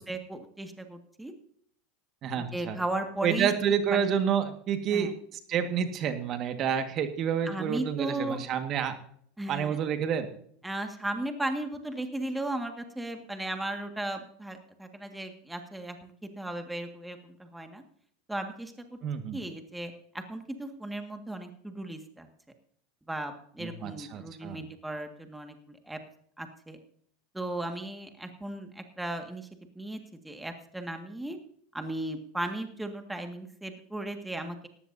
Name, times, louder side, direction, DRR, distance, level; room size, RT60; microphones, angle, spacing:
voice 1, 0.1-1.3 2.3-3.5 3.9-4.1 4.9-5.1 7.5-8.4 9.4-9.8 10.6-17.8 18.3-18.7 19.3-22.3 23.1-26.0 26.4-26.8 27.3-29.5 29.8-30.0 30.2-31.4 31.7-34.7, right 1 dB, 5° right, 5 dB, 1.8 m, -36 dB
voice 2, 2.2-2.8 3.2-5.1 5.5-9.0 9.5-10.3 19.0-19.4 23.6-24.6, right 8 dB, 45° right, 8 dB, 1.7 m, -29 dB
18.5 x 15.0 x 2.7 m, 0.63 s
hypercardioid pair, 105°, 0 cm